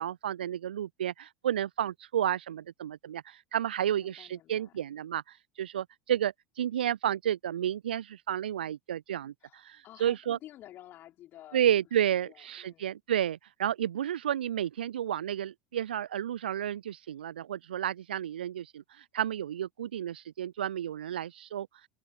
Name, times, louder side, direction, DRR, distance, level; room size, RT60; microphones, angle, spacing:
voice 1, 0.0-10.4 11.5-21.7, right 10 dB, 70° right, 0.6 m, -31 dB
voice 2, 3.9-4.8 9.4-13.0, left 13 dB, 40° left, 5.5 m, -52 dB
open air
figure-of-eight pair, 75°, 5 cm